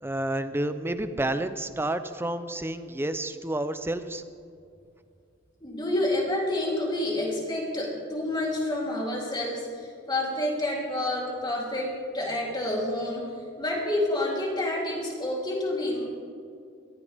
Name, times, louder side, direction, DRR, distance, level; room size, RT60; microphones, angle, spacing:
voice 1, 0.0-4.2, right 1 dB, 10° right, 10 dB, 0.6 m, -30 dB
voice 2, 5.6-13.3 13.6-16.1, left 1 dB, 25° left, -3 dB, 3.5 m, -29 dB
21.0 x 15.0 x 3.6 m, 2.4 s
head